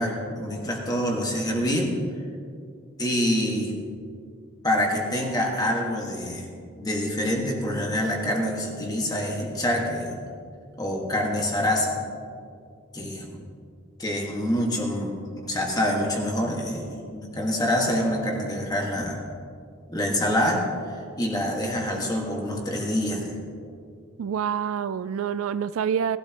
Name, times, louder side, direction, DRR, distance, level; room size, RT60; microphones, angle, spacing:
voice 1, 0.0-2.0 3.0-3.8 4.6-6.5 6.8-10.2 10.8-12.0 12.9-13.4 14.0-15.1 15.4-19.2 19.9-23.3, left 1 dB, 20° left, 0 dB, 1.7 m, -26 dB
voice 2, 24.2-26.2, right 7 dB, 70° right, 14 dB, 0.3 m, -27 dB
18.0 x 12.5 x 3.0 m, 2.4 s
head